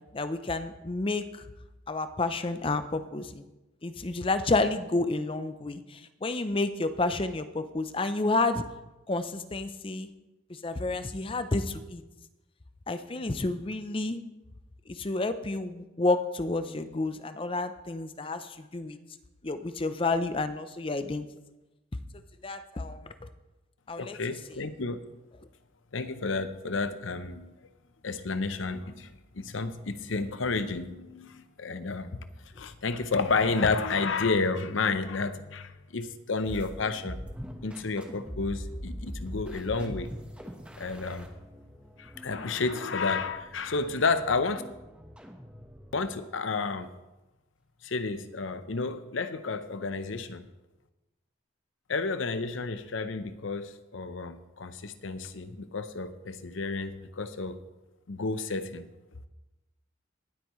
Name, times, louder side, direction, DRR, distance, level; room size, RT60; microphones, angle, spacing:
voice 1, 0.1-1.5 1.9-3.5 3.8-8.6 9.1-10.1 10.5-12.0 12.9-14.2 14.9-19.0 19.4-21.3 22.4-23.1 23.9-24.2, left 2 dB, 25° left, 11 dB, 0.6 m, -30 dB
voice 2, 24.0-25.0 25.9-27.5 28.0-32.3 32.6-37.2 37.6-40.1 40.8-41.3 42.0-44.6 45.9-46.9 47.8-50.4 51.9-57.6 58.1-58.9, left 4 dB, 80° left, 11 dB, 0.7 m, -31 dB
sound 1, 36.5-46.2, equal, 5° right, 1.1 m, -42 dB
19.0 x 8.1 x 3.1 m, 1.0 s
head